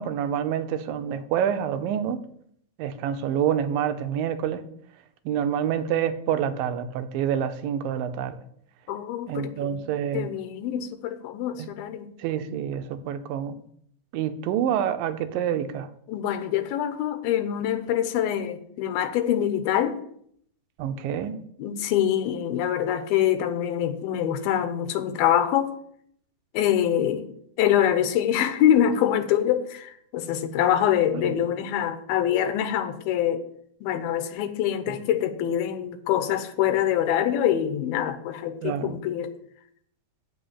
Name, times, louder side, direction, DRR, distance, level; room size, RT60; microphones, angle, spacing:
voice 1, 0.0-2.2 2.8-4.6 5.3-8.4 9.3-10.3 11.6-11.7 12.2-13.6 14.1-15.9 20.8-21.4 31.1-31.4 34.9-35.0 38.6-38.9, right 9 dB, 75° right, 2.3 m, -27 dB
voice 2, 8.9-12.1 16.1-20.0 21.6-25.7 26.5-27.3 27.6-33.4 33.8-39.3, left 10 dB, 85° left, 2.7 m, -25 dB
7.9 x 5.8 x 7.9 m
omnidirectional pair, 4.3 m